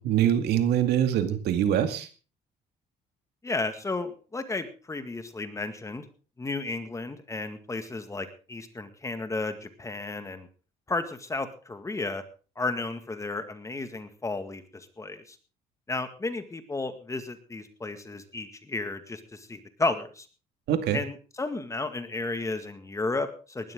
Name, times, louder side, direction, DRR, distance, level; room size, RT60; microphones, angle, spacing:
voice 1, 0.0-2.1 20.7-21.0, right 10 dB, 75° right, 8 dB, 2.2 m, -24 dB
voice 2, 3.4-6.0 6.4-10.5 10.9-12.2 12.6-15.4 15.9-20.3 20.9-23.7, left 3 dB, 20° left, 9 dB, 2.0 m, -33 dB
19.0 x 12.5 x 3.8 m, 0.37 s
cardioid pair, 110°, 17 cm